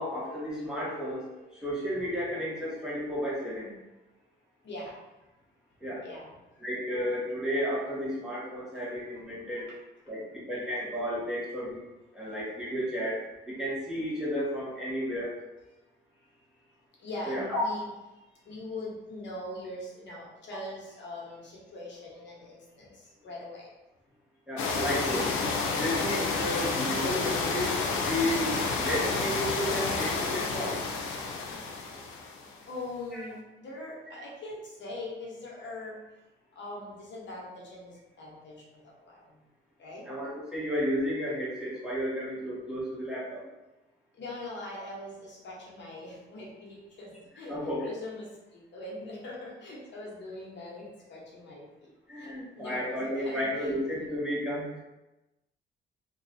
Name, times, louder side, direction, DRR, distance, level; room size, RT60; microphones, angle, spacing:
voice 1, 0.0-3.8 5.8-6.0 6.6-9.6 10.1-10.2 10.5-11.8 12.1-13.2 13.5-15.3 17.3-17.6 24.5-25.3 25.7-27.8 28.1-30.8 33.1-33.2 40.1-43.4 47.5-47.9 52.1-54.8, equal, 5° right, -8 dB, 1.5 m, -32 dB
voice 2, 4.6-5.0 6.0-6.6 9.6-9.7 16.7-16.8 17.0-23.7 24.6-24.9 32.7-36.0 36.5-39.4 39.8-40.1 44.1-53.7, left 2 dB, 65° left, -4 dB, 1.1 m, -42 dB
sound 1, 24.6-32.5, left 4 dB, 90° left, 0.6 m, -30 dB
3.0 x 2.4 x 4.1 m, 1.0 s
cardioid pair, 90°, 20 cm